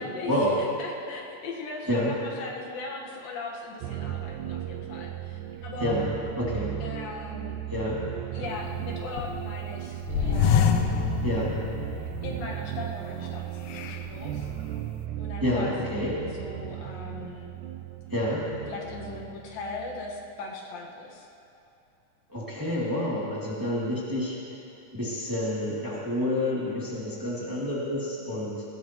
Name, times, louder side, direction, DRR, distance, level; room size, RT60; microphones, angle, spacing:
voice 1, 0.0-6.0 6.8-7.6 8.3-10.9 12.2-14.5 15.2-17.5 18.7-21.3, left 3 dB, 90° left, -2 dB, 3.3 m, -39 dB
sound 1, 3.8-20.1, right 12 dB, 80° right, 1.8 m, -36 dB
voice 2, 6.4-6.7 7.7-8.1 11.2-11.6 15.4-16.2 18.1-18.5 22.3-24.4 24.9-28.6, left 1 dB, 5° right, -7 dB, 2.1 m, -28 dB
sound 2, 8.4-9.6 10.0-12.4 12.8-12.9 13.7-14.4, left 8 dB, 75° left, 1.9 m, -27 dB
20.0 x 18.0 x 3.1 m, 2.8 s
omnidirectional pair, 4.0 m